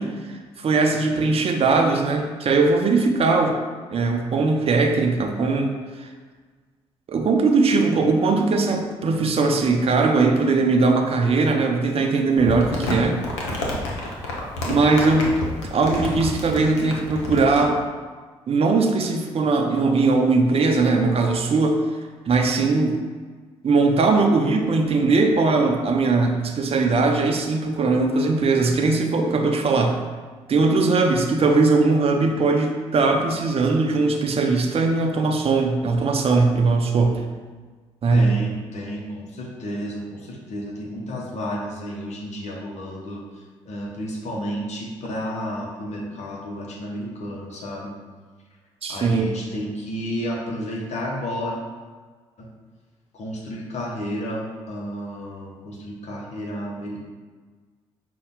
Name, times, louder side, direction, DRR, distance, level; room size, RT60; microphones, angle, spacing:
voice 1, 0.0-3.6 3.9-5.7 6.0-6.1 7.1-13.2 14.7-15.3 15.7-17.8 18.5-21.8 22.3-23.0 23.6-30.0 30.5-37.1 38.0-38.3 48.8-49.3, right 3 dB, 40° right, 3 dB, 0.6 m, -20 dB
Crumpling crinkling, 12.4-17.6, left 2 dB, 80° left, 0.7 m, -29 dB
voice 2, 38.1-48.0 48.9-51.6 52.4-52.5 53.1-57.0, equal, 50° left, -2 dB, 0.9 m, -32 dB
5.4 x 2.3 x 3.7 m, 1.4 s
hypercardioid pair, 45°, 15 cm